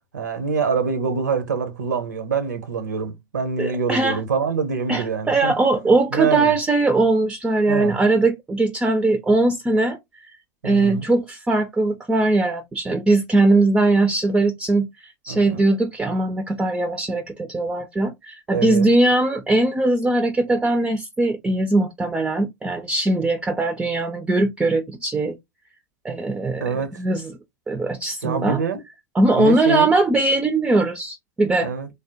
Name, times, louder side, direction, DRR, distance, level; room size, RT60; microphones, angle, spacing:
voice 1, 0.1-6.5 7.7-8.0 10.6-11.0 15.3-15.6 18.5-18.9 26.6-26.9 28.2-28.8 29.4-29.9 31.6-31.9, right 5 dB, 75° right, 0.6 m, -25 dB
voice 2, 3.6-4.2 4.9-10.0 10.6-25.4 26.0-26.6 27.0-27.3 27.7-28.6 29.2-31.7, right 2 dB, 10° right, 0.4 m, -20 dB
3.3 x 2.1 x 2.7 m
figure-of-eight pair, 85°, 10 cm